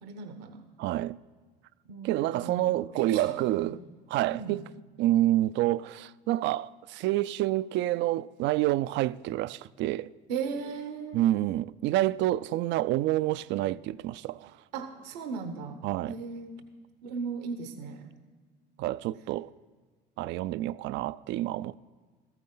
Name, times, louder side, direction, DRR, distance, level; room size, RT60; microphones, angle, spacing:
voice 1, 0.0-0.7 1.9-2.7 3.0-3.7 4.3-4.6 10.3-11.2 14.7-15.8 16.1-16.6 17.0-18.1, right 5 dB, 80° right, 1.0 m, -37 dB
voice 2, 0.8-1.2 2.0-3.8 4.1-4.6 5.0-10.1 11.1-14.6 15.8-16.2 18.8-19.5 20.2-21.8, right 15 dB, 60° right, 0.4 m, -28 dB
14.0 x 14.0 x 3.8 m
hypercardioid pair, 70°, 21 cm